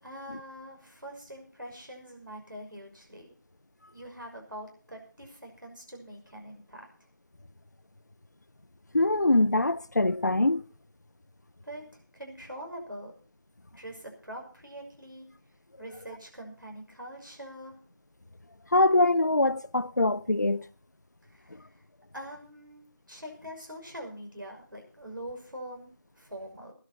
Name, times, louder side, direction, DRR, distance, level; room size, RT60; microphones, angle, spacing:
voice 1, 0.0-3.3 3.9-6.9 11.6-13.1 13.7-15.3 15.8-17.8 21.2-21.8 22.1-26.7, equal, 85° right, 6.0 m, -44 dB
voice 2, 8.9-10.6 18.7-20.6, left 2 dB, 60° left, 0.6 m, -23 dB
17.0 x 11.5 x 4.3 m
figure-of-eight pair, 170°, 10 cm